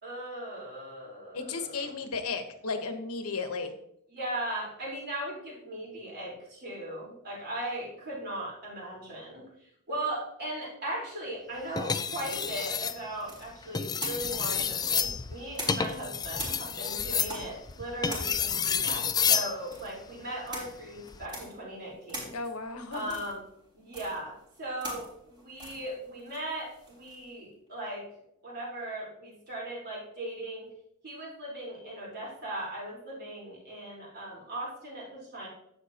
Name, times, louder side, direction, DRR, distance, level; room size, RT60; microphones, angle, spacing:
voice 1, 0.0-1.9 4.1-9.4 9.9-22.3 22.9-23.4 23.7-28.1 28.4-30.7 31.0-35.5, right 1 dB, 50° right, -4 dB, 3.9 m, -38 dB
voice 2, 1.3-3.7 22.3-23.2, left 4 dB, 85° left, 7 dB, 1.1 m, -34 dB
sound 1, 11.8-13.0 13.6-19.5 21.0-21.3, left 6 dB, 20° left, 0.3 m, -30 dB
sound 2, 13.2-16.0 16.3-27.3, right 1 dB, 20° right, 3.6 m, -44 dB
10.5 x 7.6 x 2.9 m, 0.75 s
head